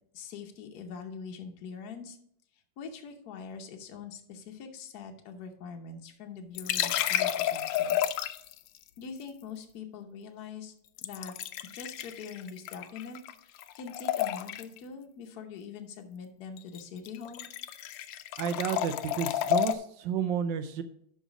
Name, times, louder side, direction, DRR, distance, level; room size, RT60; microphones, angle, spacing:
voice 1, 0.1-2.2 2.8-8.0 9.0-11.3 11.7-17.5, left 5 dB, 60° left, 4 dB, 1.3 m, -43 dB
sound 1, 6.5-8.6 11.0-13.3 13.6-14.8 16.6-16.8 17.1-19.8, left 12 dB, 80° left, 1.2 m, -31 dB
voice 2, 18.4-20.8, right 8 dB, 75° right, 9 dB, 1.3 m, -31 dB
11.0 x 4.0 x 4.9 m, 0.69 s
omnidirectional pair, 2.1 m